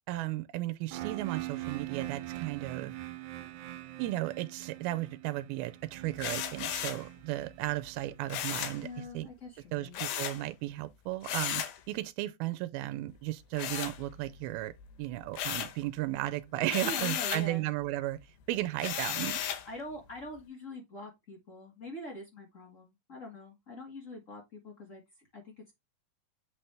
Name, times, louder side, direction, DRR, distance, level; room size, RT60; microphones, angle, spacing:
voice 1, 0.1-2.9 4.0-9.3 9.7-14.7 15.0-18.2 18.5-19.4, right 16 dB, 90° right, 2.5 m, -35 dB
sound 1, 0.9-8.7, right 16 dB, 70° right, 2.0 m, -42 dB
sound 2, 6.2-7.1 8.3-8.8 9.9-10.4 11.2-11.8 13.6-14.4 14.8-15.8 16.7-17.5 18.8-19.7, left 10 dB, 85° left, 2.9 m, -35 dB
voice 2, 8.8-10.0 16.8-17.7 19.6-25.7, left 1 dB, 60° left, 0.7 m, -44 dB
8.3 x 4.3 x 3.4 m
omnidirectional pair, 4.2 m